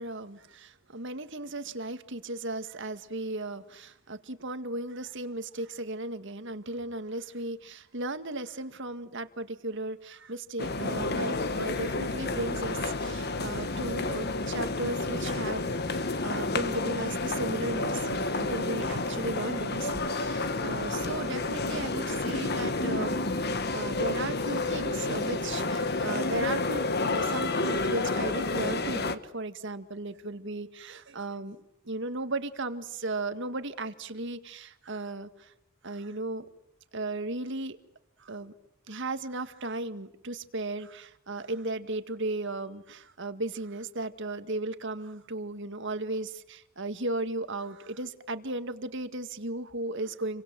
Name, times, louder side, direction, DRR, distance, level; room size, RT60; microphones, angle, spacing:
voice 1, 0.0-35.5 35.8-36.5 36.9-37.8 38.2-38.5 38.9-50.4, right 2 dB, 55° right, 10 dB, 2.0 m, -36 dB
sound 1, 10.6-29.2, left 3 dB, 45° left, 1.6 m, -30 dB
29.5 x 24.5 x 7.7 m, 0.85 s
head